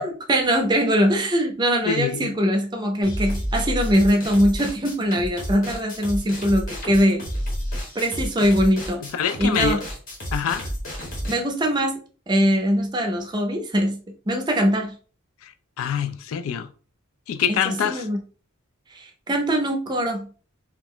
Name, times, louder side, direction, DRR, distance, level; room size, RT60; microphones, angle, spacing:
voice 1, 0.0-7.2 7.9-9.0 9.4-9.8 11.3-12.0 12.3-14.9 17.5-18.2 18.9-20.3, equal, 20° right, 0.5 m, -22 dB
voice 2, 1.8-2.3 9.1-9.8 10.3-10.7 15.4-16.7 17.3-18.1, left 7 dB, 80° left, 0.3 m, -25 dB
sound 1, 3.0-11.4, equal, 40° left, 0.9 m, -30 dB
2.4 x 2.0 x 3.6 m
head